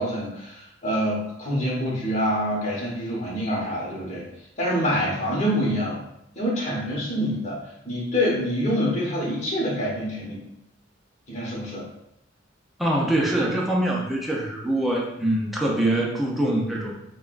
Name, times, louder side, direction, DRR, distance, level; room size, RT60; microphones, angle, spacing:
voice 1, 0.0-4.2 4.6-6.0 6.3-7.6 7.8-10.4 11.3-11.8, equal, 35° left, -6 dB, 1.2 m, -26 dB
voice 2, 12.8-16.9, right 1 dB, ahead, -3 dB, 0.6 m, -24 dB
5.7 x 2.3 x 2.5 m, 0.80 s
head